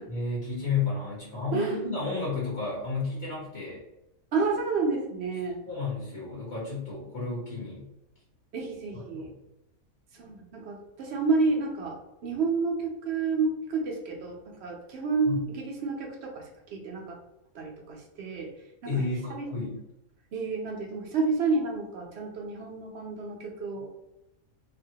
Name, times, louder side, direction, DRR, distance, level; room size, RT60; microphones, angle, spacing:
voice 1, 0.1-3.8 5.6-7.9 8.9-9.3 15.2-15.4 18.8-19.8, left 4 dB, 55° left, -7 dB, 1.3 m, -32 dB
voice 2, 4.3-5.6 8.5-9.3 10.1-17.2 17.5-18.5 18.8-19.0 19.3-19.5 20.3-23.9, right 4 dB, 65° right, 1 dB, 0.8 m, -30 dB
3.3 x 2.1 x 2.7 m, 0.90 s
omnidirectional pair, 1.4 m